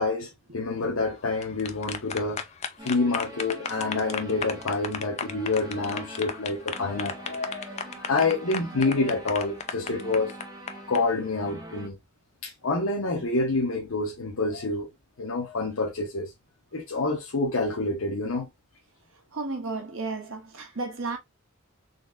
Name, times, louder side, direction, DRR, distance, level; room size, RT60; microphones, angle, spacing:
voice 1, 0.0-2.4 2.8-10.4 10.9-12.0 12.4-14.9 15.2-16.3 16.7-18.5, left 3 dB, 80° left, 0.8 m, -27 dB
sound 1, 1.2-11.0, left 6 dB, 30° left, 0.4 m, -34 dB
sound 2, 2.8-11.9, right 1 dB, 20° right, 0.7 m, -44 dB
voice 2, 19.3-21.2, right 3 dB, 70° right, 1.2 m, -33 dB
4.1 x 3.2 x 2.5 m
head